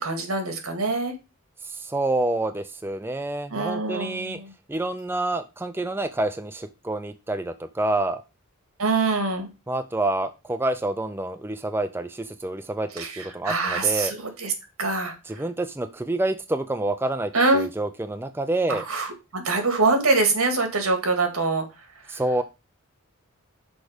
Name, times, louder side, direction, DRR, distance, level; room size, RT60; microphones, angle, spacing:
voice 1, 0.0-1.1 3.5-4.5 8.8-9.5 13.0-14.5 14.8-15.4 17.3-17.7 18.7-21.6 22.1-22.2, right 3 dB, 85° right, 6 dB, 1.9 m, -24 dB
voice 2, 1.6-4.4 4.7-8.2 9.7-14.1 15.3-18.8 22.1-22.4, right 2 dB, 10° right, 9 dB, 0.4 m, -28 dB
6.3 x 4.8 x 5.0 m, 0.27 s
head